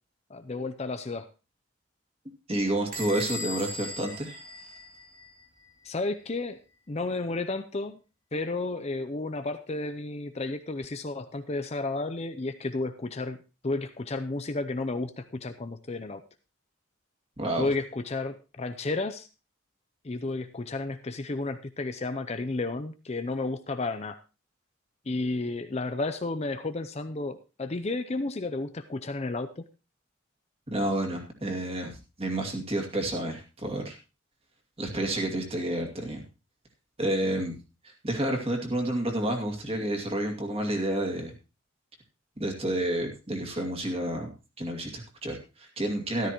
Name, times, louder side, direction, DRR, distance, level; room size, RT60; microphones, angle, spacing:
voice 1, 0.3-1.3 5.8-6.6 6.9-8.0 8.3-13.4 13.6-16.2 17.6-19.3 20.0-24.2 25.1-29.7, left 2 dB, 30° left, 9 dB, 0.6 m, -32 dB
voice 2, 2.5-4.4 17.4-17.7 30.7-31.9 32.2-34.0 34.8-36.2 37.0-37.6 37.8-41.3 42.4-44.3 44.6-46.3, right 1 dB, 30° right, 2 dB, 2.4 m, -30 dB
Bell / Squeak, 2.9-5.4, left 1 dB, 45° right, 3.0 m, -38 dB
13.5 x 12.5 x 3.0 m, 0.30 s
head